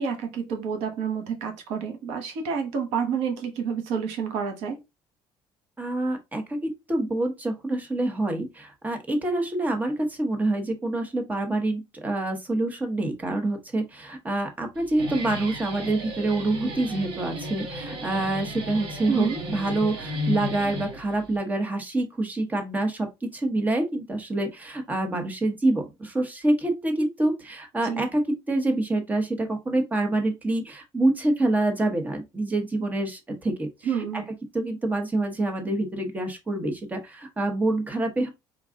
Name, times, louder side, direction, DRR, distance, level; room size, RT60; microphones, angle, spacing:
voice 1, 0.0-4.8 19.1-19.4 27.8-28.0 33.8-34.2, right 6 dB, 85° right, 1.1 m, -29 dB
voice 2, 5.8-6.6 6.9-33.7 34.1-34.2 34.5-38.3, right 2 dB, 15° right, 1.0 m, -26 dB
Guitar, 14.8-21.4, left 1 dB, 55° right, 1.3 m, -34 dB
4.7 x 2.3 x 3.6 m
cardioid pair, 135°, 10 cm